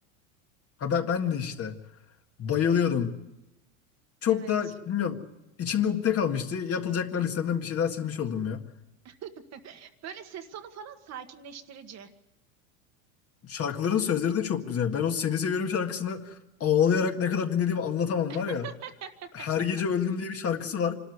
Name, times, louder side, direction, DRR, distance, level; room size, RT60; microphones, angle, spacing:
voice 1, 0.8-1.8 2.4-3.2 4.2-5.2 5.6-8.6 13.4-18.7 19.3-21.0, left 7 dB, 35° left, 5 dB, 1.9 m, -27 dB
voice 2, 9.0-12.1 18.3-19.1, right 8 dB, 40° right, 7 dB, 1.6 m, -42 dB
25.5 x 13.0 x 9.7 m, 0.96 s
supercardioid pair, 105°, 42 cm